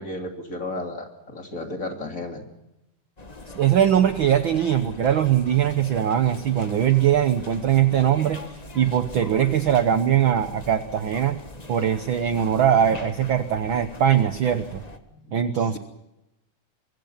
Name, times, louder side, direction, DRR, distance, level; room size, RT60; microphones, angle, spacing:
voice 1, 0.0-2.5 15.1-15.8, left 2 dB, 25° left, 4 dB, 3.0 m, -34 dB
sound 1, 3.2-15.0, left 2 dB, 40° left, 0.5 m, -42 dB
voice 2, 3.5-11.4 11.7-14.8 15.3-15.8, right 9 dB, 70° right, 11 dB, 1.1 m, -21 dB
24.5 x 23.5 x 5.7 m, 0.90 s
omnidirectional pair, 3.6 m